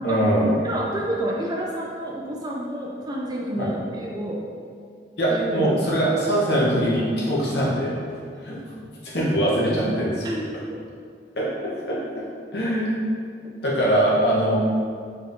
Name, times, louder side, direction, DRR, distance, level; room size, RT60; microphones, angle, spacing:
voice 1, 0.0-0.5 3.6-3.7 5.2-7.9 8.4-8.6 9.0-10.2 11.4-12.2 12.5-12.9 13.6-14.6, right 1 dB, 75° left, -6 dB, 1.0 m, -22 dB
voice 2, 0.6-4.4 5.3-6.1 7.4-7.6 9.4-10.0 10.2-10.4, right 1 dB, 25° right, -3 dB, 0.4 m, -29 dB
4.3 x 2.6 x 3.7 m, 2.2 s
head